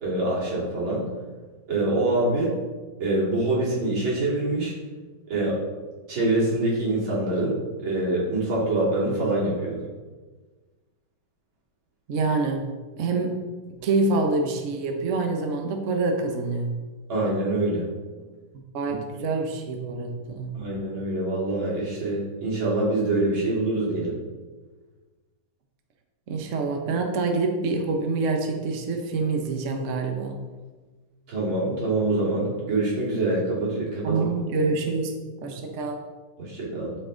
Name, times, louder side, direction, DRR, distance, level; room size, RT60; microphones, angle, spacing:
voice 1, 0.0-1.0 1.7-2.5 3.0-4.7 5.3-5.5 6.1-7.6 7.8-9.8 17.1-17.8 20.5-24.2 31.3-34.1 36.4-37.0, right 2 dB, 85° right, -6 dB, 3.3 m, -25 dB
voice 2, 12.1-12.6 13.0-13.4 13.8-16.7 18.5-20.5 26.3-30.4 34.0-35.1 35.4-36.0, right 3 dB, 50° right, 3 dB, 1.1 m, -26 dB
12.5 x 4.7 x 3.8 m, 1.3 s
omnidirectional pair, 2.1 m